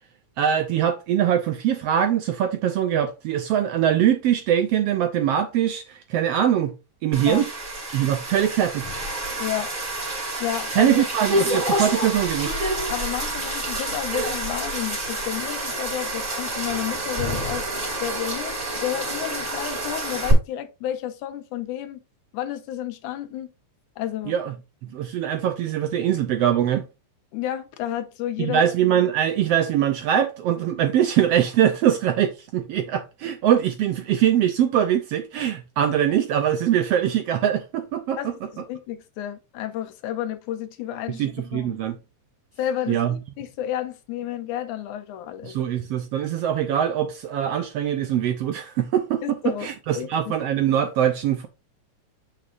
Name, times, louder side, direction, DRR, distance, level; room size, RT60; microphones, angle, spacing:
voice 1, 0.4-6.7 7.0-7.5 7.9-8.9 10.8-12.5 24.3-24.5 24.8-26.8 28.4-38.3 41.1-42.0 42.9-43.2 45.4-51.5, right 10 dB, 75° right, 1.5 m, -22 dB
sound 1, 7.1-20.3, right 1 dB, 20° right, 2.5 m, -28 dB
voice 2, 9.4-9.7 10.4-11.0 12.9-17.6 18.0-22.0 22.3-23.5 24.0-24.3 27.3-28.6 38.2-41.3 41.5-41.8 42.6-45.5 49.2-50.3, left 11 dB, 85° left, 2.4 m, -31 dB
7.4 x 6.5 x 2.5 m
omnidirectional pair, 3.4 m